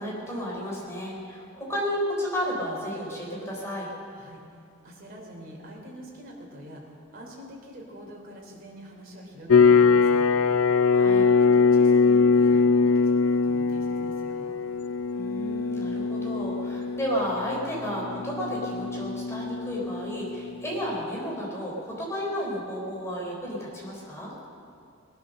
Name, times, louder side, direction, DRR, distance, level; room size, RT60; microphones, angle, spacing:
voice 1, 0.0-3.9 10.9-11.3 15.1-24.3, equal, 15° left, -4 dB, 4.2 m, -32 dB
voice 2, 4.1-10.3 11.4-14.5, equal, 45° right, -1 dB, 3.6 m, -45 dB
sound 1, 9.5-20.6, left 4 dB, 85° left, 0.6 m, -22 dB
20.5 x 11.0 x 6.5 m, 2.5 s
head